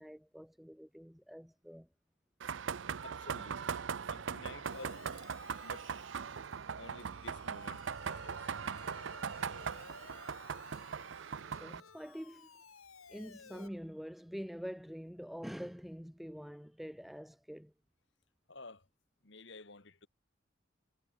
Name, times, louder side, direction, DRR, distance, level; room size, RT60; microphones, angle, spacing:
voice 1, 0.0-1.9 11.6-12.5 13.1-17.7, equal, ahead, 0.4 m, -46 dB
sound 1, 2.4-11.8, right 6 dB, 60° right, 0.5 m, -40 dB
voice 2, 3.0-5.0 5.6-5.9 6.8-8.4 18.5-18.9 19.2-20.1, left 3 dB, 60° left, 2.4 m, -52 dB
Siren, 4.6-13.7, left 5 dB, 85° left, 1.9 m, -57 dB
head